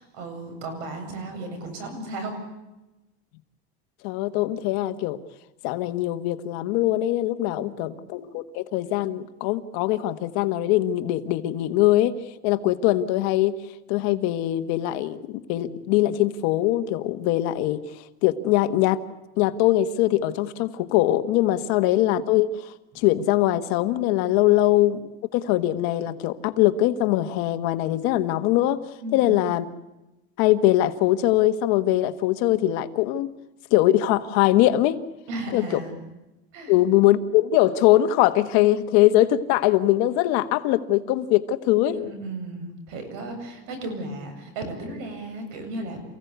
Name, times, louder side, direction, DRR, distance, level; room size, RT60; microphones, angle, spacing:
voice 1, 0.0-2.4 7.5-7.9 21.8-22.0 29.0-29.4 35.3-36.0 36.5-36.8 41.9-46.0, right 2 dB, 60° right, 6 dB, 7.9 m, -35 dB
voice 2, 4.0-5.2 5.6-12.1 12.4-13.6 13.9-17.8 18.2-19.0 19.4-28.8 29.1-29.6 30.4-33.3 33.7-35.0 35.5-35.8 36.7-42.1, left 14 dB, 60° left, 10 dB, 1.5 m, -22 dB
29.0 x 16.0 x 8.2 m, 1.0 s
cardioid pair, 160°, 32 cm